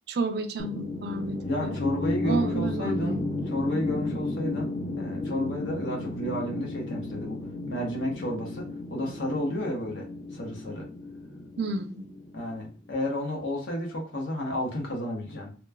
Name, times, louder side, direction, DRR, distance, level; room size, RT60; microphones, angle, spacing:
voice 1, 0.1-1.8 2.2-3.3 11.6-12.1, right 3 dB, 60° right, 0.3 m, -31 dB
sound 1, 0.6-12.7, left 3 dB, 30° left, 0.4 m, -34 dB
voice 2, 1.4-3.2 3.5-7.4 7.7-10.1 10.3-10.9 12.3-15.5, equal, 75° left, 0.9 m, -32 dB
3.0 x 2.2 x 2.3 m
head